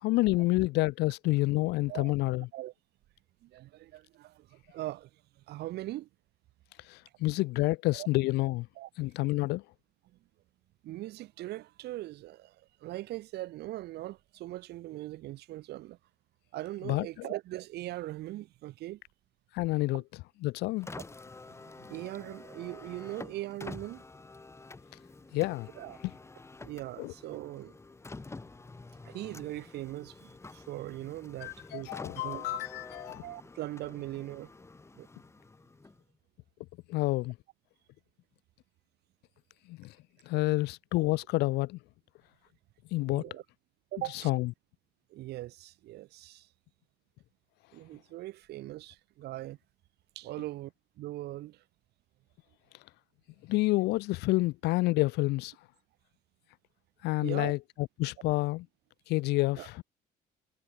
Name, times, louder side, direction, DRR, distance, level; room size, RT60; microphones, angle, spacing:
voice 1, 0.0-2.5 6.9-8.7 9.0-9.6 16.9-17.3 19.5-20.0 20.4-20.9 25.3-25.7 27.0-27.1 31.4-33.2 36.9-37.4 39.7-39.9 40.3-41.8 42.9-43.2 44.2-44.5 53.5-55.5 57.0-57.6 58.0-58.7 59.1-59.8, left 20 dB, 80° left, 0.4 m, -28 dB
voice 2, 3.4-5.1 5.5-6.1 7.2-7.3 7.9-8.1 8.8-8.9 10.8-16.0 16.5-19.0 19.9-20.0 21.5-24.0 25.8-26.0 26.6-27.7 29.0-32.4 33.2-34.5 34.9-35.1 43.0-43.4 43.9-44.3 45.1-46.5 47.7-49.6 50.2-51.6 57.2-57.5 59.6-59.7, right 16 dB, 75° right, 2.7 m, -40 dB
Car, 20.7-36.2, left 3 dB, 15° left, 1.6 m, -48 dB
cardioid pair, 110°, 17 cm